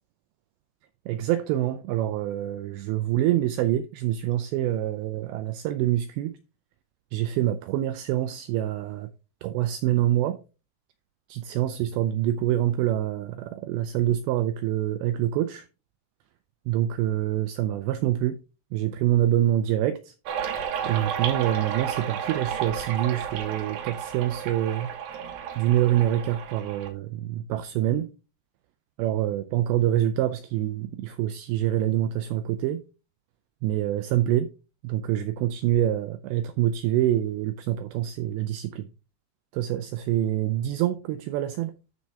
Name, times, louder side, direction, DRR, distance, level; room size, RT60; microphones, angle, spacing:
voice 1, 1.1-6.4 7.1-9.1 9.4-10.4 11.3-15.7 16.7-18.4 18.7-20.1 20.9-25.0 25.6-28.1 29.0-32.8 33.6-34.5 34.8-38.9 39.5-41.7, right 12 dB, 90° right, 2.5 m, -26 dB
sound 1, 20.3-26.9, right 8 dB, 70° right, 3.0 m, -32 dB
13.0 x 4.7 x 3.5 m
omnidirectional pair, 5.6 m